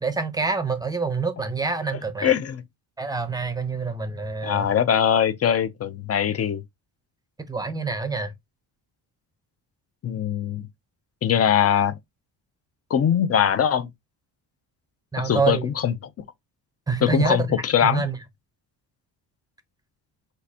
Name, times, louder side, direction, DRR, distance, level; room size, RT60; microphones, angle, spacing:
voice 1, 0.0-2.3 3.0-4.7 7.5-8.3 15.1-15.7 16.9-17.5 17.8-18.2, right 4 dB, 10° right, 0.6 m, -26 dB
voice 2, 2.2-2.6 4.4-6.6 10.0-10.7 11.2-12.0 12.9-13.9 15.2-15.9 17.0-18.1, left 9 dB, 35° left, 0.5 m, -21 dB
6.3 x 2.6 x 2.7 m
cardioid pair, 140°, 45 cm